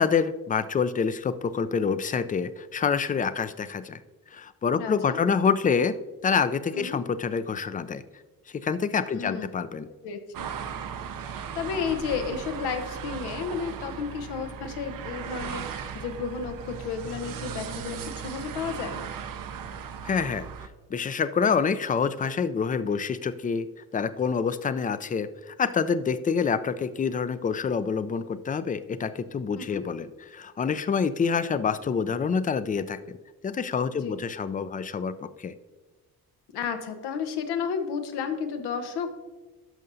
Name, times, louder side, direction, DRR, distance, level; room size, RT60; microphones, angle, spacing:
voice 1, 0.0-4.0 4.3-6.0 6.2-8.0 8.5-9.9 20.0-20.5 20.9-23.7 23.9-33.2 33.4-35.5, left 6 dB, 20° left, 14 dB, 0.3 m, -27 dB
voice 2, 4.8-5.2 6.7-7.0 9.1-9.5 10.0-10.5 11.3-19.0 29.6-29.8 33.9-34.2 36.5-39.1, left 6 dB, 85° left, 7 dB, 0.9 m, -32 dB
sound 1, 10.3-20.7, right 7 dB, 60° right, 0.6 m, -37 dB
12.0 x 5.4 x 2.6 m, 1.2 s
supercardioid pair, 65°, 39 cm